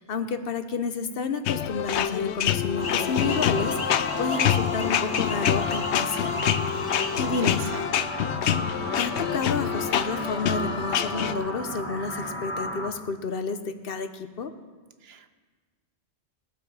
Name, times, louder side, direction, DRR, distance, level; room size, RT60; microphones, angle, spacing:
voice 1, 0.0-6.4 6.8-7.6 9.0-14.5, left 4 dB, 60° left, 9 dB, 1.0 m, -31 dB
sound 1, 1.4-11.3, left 10 dB, 85° left, 0.9 m, -26 dB
sound 2, 2.8-7.9, left 3 dB, 40° left, 1.0 m, -38 dB
sound 3, 2.8-12.9, left 1 dB, 10° left, 1.3 m, -33 dB
voice 2, 7.3-8.2 15.0-15.3, right 6 dB, 70° right, 9 dB, 1.0 m, -41 dB
20.5 x 7.8 x 4.8 m, 1.4 s
omnidirectional pair, 1.1 m